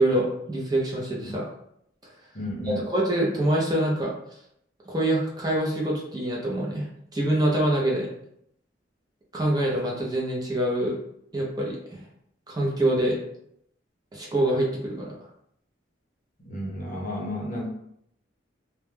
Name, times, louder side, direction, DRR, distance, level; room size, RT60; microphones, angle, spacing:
voice 1, 0.0-1.5 2.6-4.1 4.9-6.9 7.1-8.1 9.3-11.0 11.3-12.0 12.5-13.2 14.1-15.1, right 1 dB, 20° right, -3 dB, 0.4 m, -25 dB
voice 2, 2.3-2.8 16.4-17.7, left 1 dB, 45° left, -2 dB, 0.6 m, -32 dB
2.1 x 2.0 x 3.1 m, 0.73 s
head